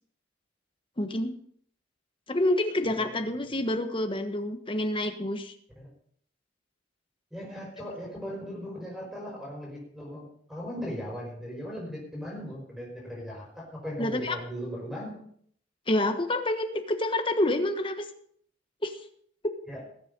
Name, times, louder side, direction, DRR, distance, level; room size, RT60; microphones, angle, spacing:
voice 1, 1.0-1.3 2.3-5.5 14.0-14.4 15.9-18.1 18.8-19.0, left 1 dB, 25° left, 7 dB, 1.3 m, -28 dB
voice 2, 2.9-3.7 5.8-5.9 7.3-15.3 19.7-19.8, equal, ahead, -2 dB, 5.1 m, -38 dB
20.0 x 7.6 x 5.4 m, 0.62 s
head